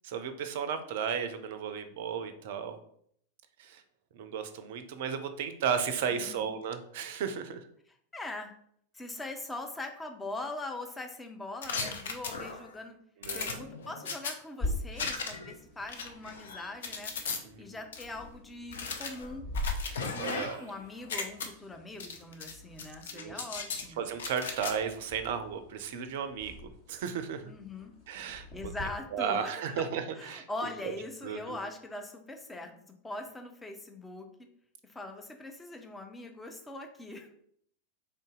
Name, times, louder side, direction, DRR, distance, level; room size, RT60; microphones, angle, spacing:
voice 1, 0.0-2.8 3.6-3.8 4.1-7.7 13.2-13.6 17.4-17.6 19.9-20.7 23.1-23.5 24.0-27.5 28.1-28.5 29.1-30.7 31.2-31.6, right 7 dB, 55° right, 9 dB, 0.4 m, -34 dB
voice 2, 6.1-6.5 7.9-8.5 8.9-13.0 13.3-17.1 17.6-19.5 20.1-24.1 27.4-27.9 28.3-29.9 30.2-34.3 34.8-37.3, left 2 dB, 10° left, 4 dB, 0.6 m, -42 dB
sound 1, 11.6-12.7 13.2-14.3 15.0-15.5 15.9-17.4 17.9-18.0 18.7-20.7 21.0-21.5 22.0-22.5 22.8-23.8 24.2-24.7, left 5 dB, 65° left, 0.5 m, -37 dB
sound 2, 14.6-28.8, left 1 dB, 35° left, 1.3 m, -43 dB
3.7 x 2.7 x 3.6 m, 0.66 s
figure-of-eight pair, 90°, 0 cm